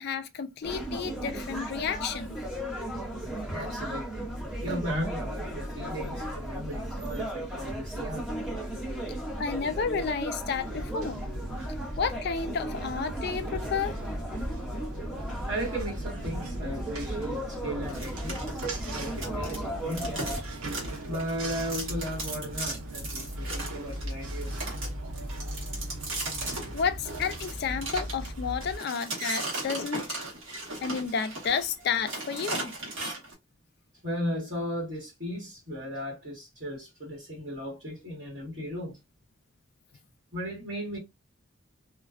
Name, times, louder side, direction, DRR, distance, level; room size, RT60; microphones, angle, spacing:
voice 1, 0.0-2.4 9.4-11.3 12.0-14.0 26.7-30.2 30.8-32.7, left 6 dB, 50° left, 0.3 m, -31 dB
sound 1, 0.6-20.4, right 1 dB, ahead, 0.6 m, -36 dB
voice 2, 3.5-4.3 4.6-8.3 9.2-9.3 15.5-18.6 18.9-20.2 20.8-24.5 34.0-39.0 40.3-41.0, equal, 50° right, 1.4 m, -36 dB
sound 2, 10.6-28.8, right 1 dB, 90° right, 0.8 m, -38 dB
sound 3, 17.9-19.6 19.9-33.3, right 2 dB, 65° right, 1.1 m, -36 dB
2.4 x 2.2 x 2.3 m
head